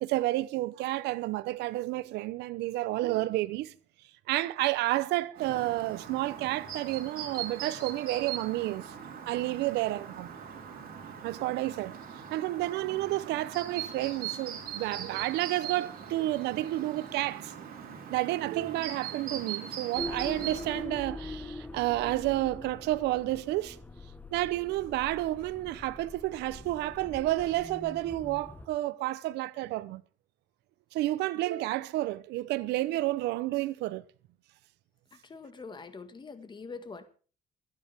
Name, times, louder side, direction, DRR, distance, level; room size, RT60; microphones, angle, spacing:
voice 1, 0.0-3.7 4.3-8.9 9.3-10.3 11.2-11.9 12.3-17.5 18.1-23.8 24.3-30.0 30.9-34.0, right 17 dB, 85° right, 0.8 m, -30 dB
Chirp tweet, 5.4-20.8, right 8 dB, 60° right, 4.5 m, -41 dB
sound 1, 19.9-28.7, left 1 dB, 10° left, 1.2 m, -43 dB
voice 2, 35.1-37.1, left 4 dB, 25° left, 1.7 m, -44 dB
25.0 x 9.9 x 3.5 m
cardioid pair, 110°, 17 cm